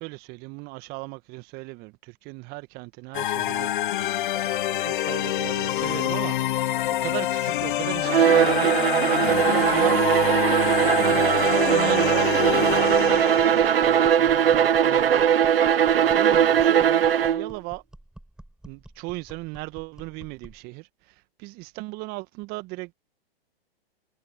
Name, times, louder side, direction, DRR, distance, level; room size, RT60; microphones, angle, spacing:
voice 1, 0.0-3.7 4.3-6.7 7.0-10.0 10.3-11.3 11.6-17.8 18.6-23.0, right 24 dB, 30° right, 1.3 m, -37 dB
sound 1, 3.1-13.9, left 13 dB, 55° left, 0.6 m, -26 dB
Bowed string instrument, 8.0-17.5, right 9 dB, 70° right, 1.0 m, -20 dB
sound 2, 12.9-20.7, right 1 dB, ahead, 4.8 m, -48 dB
figure-of-eight pair, 115°, 30 cm